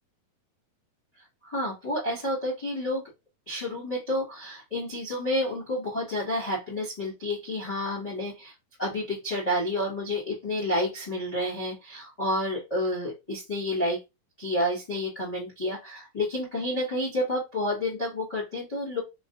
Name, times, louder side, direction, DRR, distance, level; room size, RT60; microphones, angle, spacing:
voice 1, 1.4-3.0 3.5-8.5 8.8-14.0 14.4-19.0, left 1 dB, 70° left, -6 dB, 0.3 m, -30 dB
6.0 x 2.0 x 2.7 m, 0.24 s
omnidirectional pair, 4.3 m